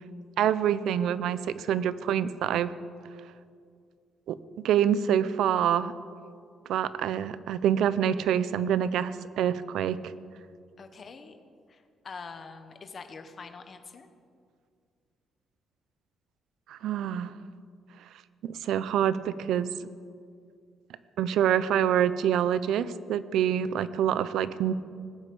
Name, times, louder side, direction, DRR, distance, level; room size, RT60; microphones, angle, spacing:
voice 1, 0.4-2.7 4.3-4.4 4.6-5.9 6.7-10.0 16.7-17.3 18.4-19.7 21.2-24.7, right 9 dB, 65° right, 15 dB, 0.6 m, -26 dB
voice 2, 10.8-11.4 11.7-14.1, left 5 dB, 30° left, 7 dB, 1.2 m, -44 dB
19.5 x 8.2 x 8.6 m, 2.2 s
cardioid pair, 165°, 0 cm